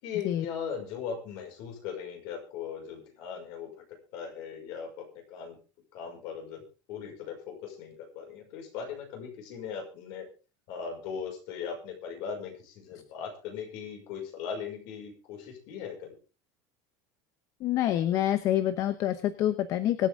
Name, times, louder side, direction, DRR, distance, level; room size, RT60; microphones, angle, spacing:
voice 1, 0.0-3.8 4.1-5.6 5.9-6.6 6.9-10.3 10.7-16.1, left 7 dB, 50° left, 2 dB, 5.7 m, -39 dB
voice 2, 17.6-20.1, left 12 dB, 35° left, 12 dB, 0.9 m, -27 dB
24.0 x 8.8 x 3.7 m, 0.34 s
cardioid pair, 180°, 10 cm